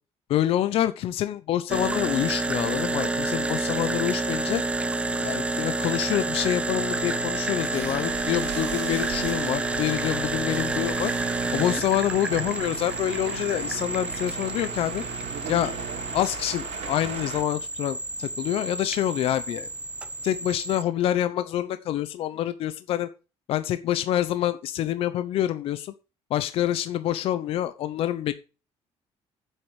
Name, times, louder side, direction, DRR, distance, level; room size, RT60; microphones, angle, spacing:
voice 1, 0.3-4.6 5.2-15.0 15.5-15.8 16.1-19.7 20.2-23.1 23.5-25.9 26.3-28.3, left 12 dB, 60° left, 11 dB, 0.9 m, -27 dB
sound 1, 1.7-20.8, right 2 dB, 10° right, 0.7 m, -30 dB
sound 2, 6.8-16.2, right 8 dB, 65° right, 1.7 m, -41 dB
sound 3, 7.7-17.4, right 7 dB, 85° right, 3.5 m, -38 dB
7.9 x 7.7 x 8.1 m, 0.33 s
cardioid pair, 160°, 11 cm